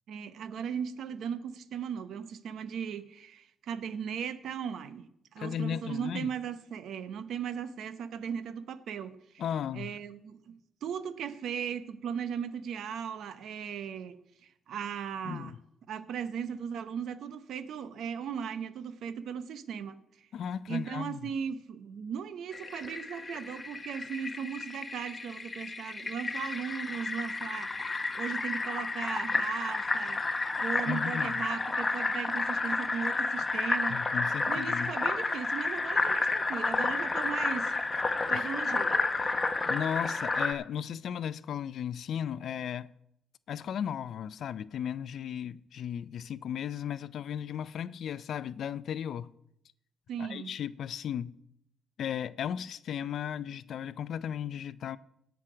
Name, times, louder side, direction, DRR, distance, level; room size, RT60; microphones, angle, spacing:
voice 1, 0.1-5.1 5.3-9.4 9.7-15.6 15.9-20.3 20.7-27.9 28.2-30.2 30.6-34.0 34.5-37.8 38.3-38.9 50.1-50.6, right 7 dB, 70° right, 0.8 m, -37 dB
voice 2, 5.4-6.3 9.4-9.9 15.3-15.6 20.3-21.3 30.9-31.3 33.9-34.9 38.3-38.5 39.7-42.9 43.5-49.3 50.2-51.4 52.0-55.0, left 9 dB, 65° left, 0.4 m, -35 dB
Fill (with liquid), 22.5-40.5, left 3 dB, 25° left, 0.9 m, -31 dB
17.5 x 5.9 x 5.0 m
cardioid pair, 90°, 0 cm